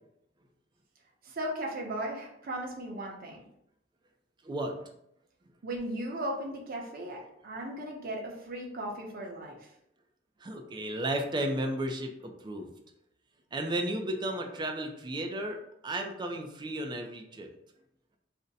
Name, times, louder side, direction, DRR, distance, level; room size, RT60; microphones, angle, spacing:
voice 1, 1.2-3.4 5.6-9.7, right 1 dB, 50° right, -1 dB, 0.7 m, -37 dB
voice 2, 4.4-4.7 10.4-12.7 13.5-17.5, right 1 dB, 25° right, 3 dB, 0.4 m, -33 dB
2.5 x 2.1 x 3.9 m, 0.76 s
head